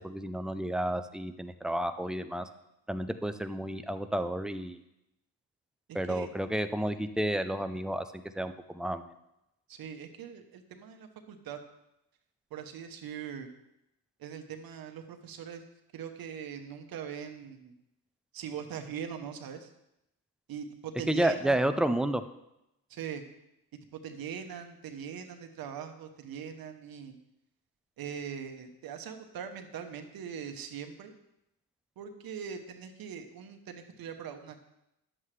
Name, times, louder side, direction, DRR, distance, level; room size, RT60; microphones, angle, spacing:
voice 1, 0.0-2.5 2.9-4.8 5.9-9.1 21.1-22.2, right 1 dB, ahead, 9 dB, 0.4 m, -31 dB
voice 2, 5.9-6.3 9.7-11.6 12.5-13.5 14.2-15.6 15.9-17.7 18.3-19.7 20.5-21.7 22.9-23.2 23.9-27.1 28.0-31.1 32.0-34.6, right 7 dB, 65° right, 6 dB, 1.1 m, -41 dB
11.0 x 7.5 x 3.3 m, 0.86 s
cardioid pair, 100°, 38 cm